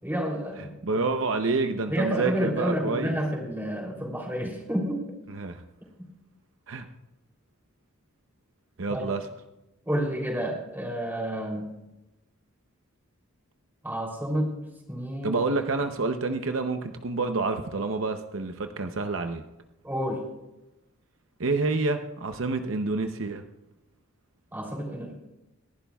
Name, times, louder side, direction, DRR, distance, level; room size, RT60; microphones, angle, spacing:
voice 1, 0.0-0.7 1.9-5.0 8.9-9.1 9.9-11.7 13.8-14.5 14.9-15.4 19.8-20.2 24.5-25.1, equal, 10° right, 0 dB, 3.1 m, -29 dB
voice 2, 0.8-3.1 5.3-5.6 6.7-6.9 8.8-9.3 15.2-19.4 21.4-23.4, right 3 dB, 70° right, 7 dB, 0.8 m, -28 dB
28.0 x 11.5 x 2.4 m, 0.97 s
head